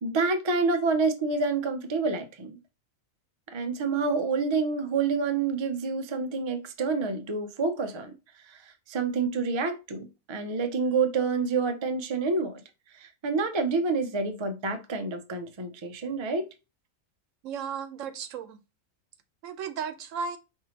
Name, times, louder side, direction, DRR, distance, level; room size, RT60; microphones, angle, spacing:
voice 1, 0.0-2.6 3.5-8.1 8.5-8.6 8.9-12.6 13.0-16.5, right 4 dB, 45° right, 0.3 m, -28 dB
voice 2, 17.4-18.6 19.4-20.4, right 6 dB, 75° right, 1.0 m, -35 dB
5.4 x 2.7 x 2.8 m
omnidirectional pair, 1.4 m